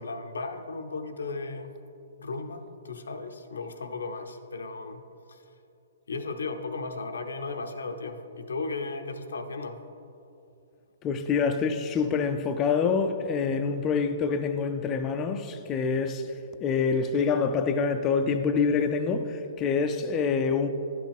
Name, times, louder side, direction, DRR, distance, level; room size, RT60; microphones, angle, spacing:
voice 1, 0.0-1.7 2.2-5.4 6.1-9.8, left 3 dB, 85° left, 0.6 m, -35 dB
voice 2, 11.0-16.2 16.6-20.7, left 5 dB, 25° left, 0.4 m, -26 dB
11.0 x 6.2 x 3.5 m
hypercardioid pair, 135°, 0 cm